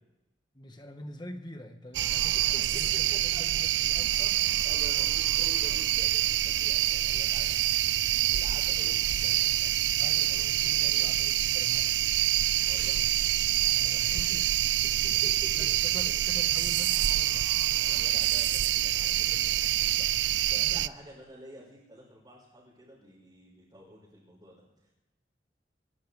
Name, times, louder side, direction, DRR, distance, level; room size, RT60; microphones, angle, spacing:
voice 1, 0.5-2.3 2.7-4.5 5.0-5.1 7.4-7.6 10.0-12.0 13.7-14.6 15.1-17.5 20.5-20.9, left 1 dB, 25° left, 5 dB, 1.5 m, -45 dB
sound 1, 1.9-20.9, right 14 dB, 90° right, 0.4 m, -26 dB
voice 2, 2.2-2.8 3.1-3.4 3.7-3.9 4.3-7.7 8.1-9.4 12.6-13.0 13.9-14.4 14.8-15.3 15.6-15.8 17.8-20.1 20.5-24.9, equal, 20° right, -8 dB, 4.8 m, -50 dB
26.5 x 11.5 x 3.5 m, 0.99 s
head